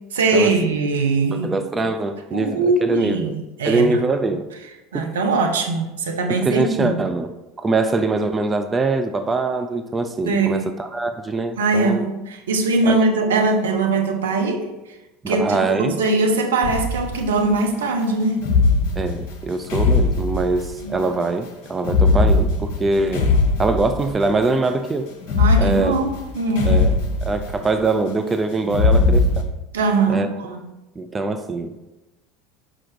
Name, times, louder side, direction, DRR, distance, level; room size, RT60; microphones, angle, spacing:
voice 1, 0.1-1.5 2.3-4.0 4.9-7.0 10.3-10.7 11.6-14.7 15.3-18.4 20.8-21.0 25.4-26.8 29.7-30.7, right 3 dB, 70° right, 4 dB, 0.8 m, -21 dB
voice 2, 1.3-3.3 3.6-4.5 4.9-5.2 6.3-7.3 7.6-12.1 12.9-13.0 15.2-16.0 19.0-23.3 23.6-25.1 25.6-26.0 26.6-26.9 27.2-29.4 30.1-30.3 31.0-31.7, right 3 dB, 20° right, 7 dB, 0.5 m, -23 dB
sound 1, 16.6-17.4 18.4-20.9 21.8-24.4 25.2-27.8 28.7-29.4, left 3 dB, 55° left, 0.9 m, -19 dB
5.9 x 5.0 x 4.5 m, 1.0 s
figure-of-eight pair, 70°, 0 cm